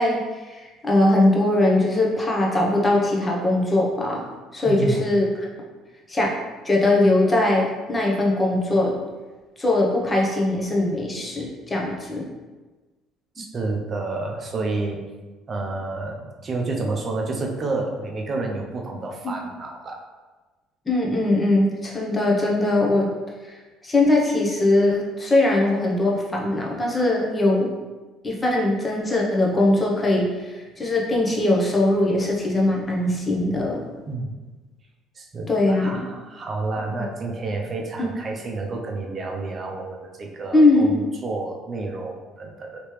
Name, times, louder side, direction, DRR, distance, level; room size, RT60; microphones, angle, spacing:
voice 1, 0.0-4.2 4.5-5.5 6.1-6.4 6.6-9.0 9.6-12.3 20.9-23.1 23.8-27.7 28.2-33.8 35.5-36.1 36.8-37.1 38.0-38.1 40.5-41.0, left 2 dB, 20° left, -2 dB, 0.8 m, -21 dB
voice 2, 4.6-5.1 13.4-15.0 15.5-20.0 34.1-34.4 35.2-42.8, right 3 dB, 40° right, 1 dB, 0.6 m, -30 dB
3.1 x 2.9 x 3.1 m, 1.2 s
cardioid pair, 95°, 0 cm